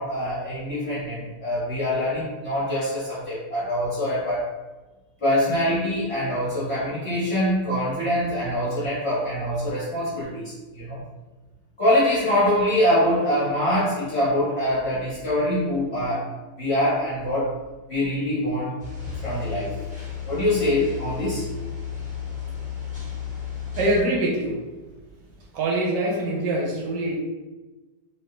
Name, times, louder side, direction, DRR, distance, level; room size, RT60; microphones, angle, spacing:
voice 1, 0.0-4.5 5.2-11.0 11.8-17.5 17.9-18.7 19.2-19.8 20.3-21.5, left 1 dB, 45° left, -9 dB, 0.9 m, -24 dB
sound 1, 18.8-24.0, left 8 dB, 5° right, 0.6 m, -33 dB
voice 2, 23.7-24.6 25.5-27.2, right 1 dB, 75° right, -2 dB, 1.3 m, -24 dB
3.3 x 2.7 x 2.2 m, 1.2 s
omnidirectional pair, 1.9 m